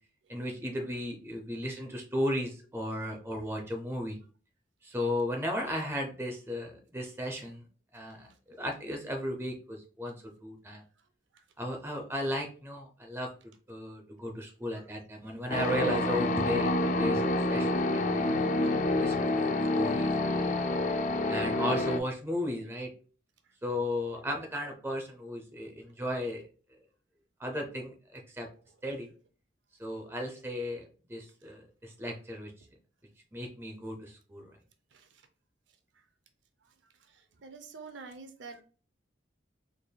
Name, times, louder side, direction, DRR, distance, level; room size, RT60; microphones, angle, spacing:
voice 1, 0.3-4.2 4.8-7.6 7.9-8.3 8.6-10.8 11.6-13.3 13.7-16.7 17.0-17.2 17.5-18.7 18.9-19.2 19.5-20.6 21.3-22.9 23.6-26.4 27.4-28.5 28.8-29.1 29.8-32.5 33.3-34.5, left 1 dB, 15° right, 2 dB, 0.6 m, -35 dB
sound 1, 15.5-22.0, left 2 dB, 40° left, 0.3 m, -28 dB
voice 2, 37.4-38.6, right 4 dB, 75° right, 7 dB, 0.5 m, -45 dB
4.0 x 3.3 x 2.2 m, 0.39 s
head